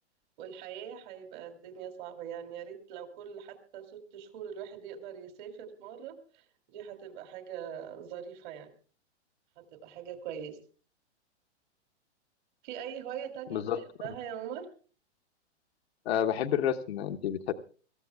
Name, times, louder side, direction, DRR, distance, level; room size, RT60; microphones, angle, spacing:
voice 1, 0.4-8.7 9.6-10.6 12.6-14.7, right 8 dB, 45° right, 6 dB, 2.7 m, -42 dB
voice 2, 13.5-13.8 16.0-17.5, left 9 dB, 65° left, 8 dB, 1.1 m, -29 dB
25.0 x 14.5 x 2.3 m, 0.38 s
hypercardioid pair, 115°, 35 cm